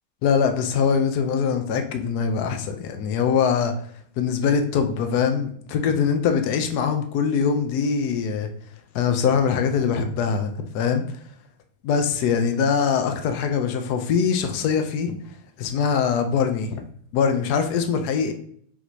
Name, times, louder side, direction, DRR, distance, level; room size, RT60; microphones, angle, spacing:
voice 1, 0.2-3.7 4.2-8.5 8.9-11.1 11.8-15.2 15.6-16.8 17.1-18.3, left 6 dB, 75° left, 6 dB, 1.2 m, -22 dB
4.1 x 2.7 x 4.5 m, 0.62 s
omnidirectional pair, 1.7 m